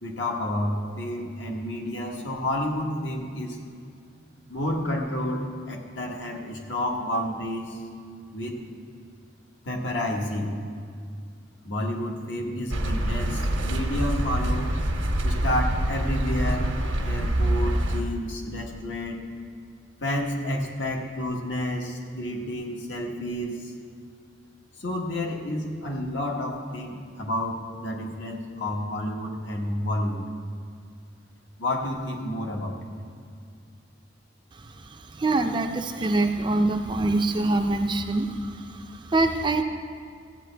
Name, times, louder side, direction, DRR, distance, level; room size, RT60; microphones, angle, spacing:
voice 1, 0.0-3.6 4.5-7.8 8.3-8.6 9.6-10.5 11.6-14.8 15.2-16.7 17.0-19.2 20.0-23.7 24.8-30.3 31.6-32.9, left 1 dB, 75° left, 0 dB, 1.3 m, -30 dB
sound 1, 12.7-18.0, right 1 dB, 90° right, 1.1 m, -25 dB
voice 2, 34.5-39.6, right 2 dB, 25° right, 5 dB, 0.4 m, -25 dB
14.5 x 8.2 x 3.4 m, 2.3 s
head